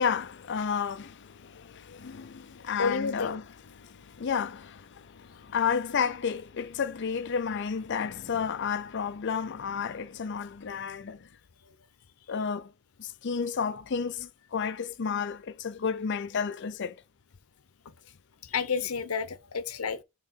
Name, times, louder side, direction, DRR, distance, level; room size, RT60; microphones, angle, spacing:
voice 1, 0.0-11.2 12.3-12.7 13.0-17.0, left 6 dB, 55° left, 0.5 m, -32 dB
voice 2, 2.8-3.4 18.4-20.0, left 5 dB, 90° left, 0.8 m, -30 dB
5.8 x 3.7 x 4.4 m
head